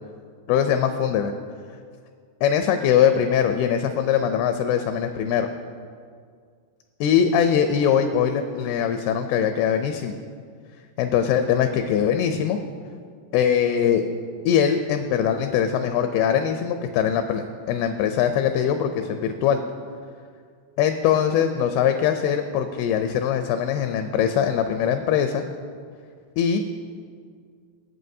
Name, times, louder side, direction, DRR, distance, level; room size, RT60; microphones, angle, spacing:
voice 1, 0.5-1.3 2.4-5.5 7.0-10.2 11.0-12.6 13.3-14.0 14.5-19.6 20.8-25.4 26.4-26.7, left 8 dB, 85° left, 7 dB, 2.3 m, -22 dB
19.0 x 7.9 x 2.7 m, 2.1 s
omnidirectional pair, 4.8 m